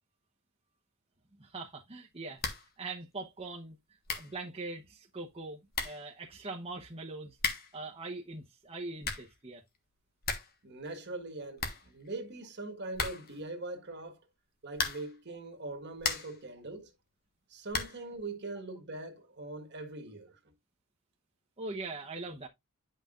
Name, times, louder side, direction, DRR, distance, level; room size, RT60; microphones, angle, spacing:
voice 1, 1.3-2.4 2.8-3.8 4.1-7.4 7.7-9.6 21.6-22.5, right 3 dB, 25° right, 1.0 m, -42 dB
sound 1, 2.4-2.8 3.0-3.1 3.7-3.8 4.0-4.4 5.3-5.4 5.7-6.1 7.3-7.8 8.8-9.4 9.7-9.8 10.0-10.6 10.9-11.0 11.2-11.3 11.6-12.4 12.9-13.4 14.7-15.2 15.7-16.4 17.7-18.1, left 5 dB, 45° left, 1.4 m, -36 dB
voice 2, 10.6-14.2 14.6-16.9 17.5-20.5, right 2 dB, 50° right, 1.6 m, -42 dB
9.8 x 5.8 x 2.5 m
head